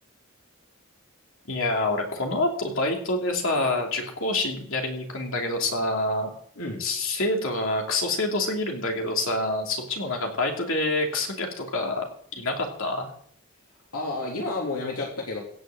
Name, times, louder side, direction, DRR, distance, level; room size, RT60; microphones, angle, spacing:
voice 1, 1.5-6.3 6.8-13.1, left 2 dB, 65° left, 1 dB, 2.9 m, -27 dB
voice 2, 13.9-15.4, left 2 dB, 90° left, -2 dB, 3.3 m, -30 dB
16.5 x 6.6 x 7.7 m, 0.63 s
head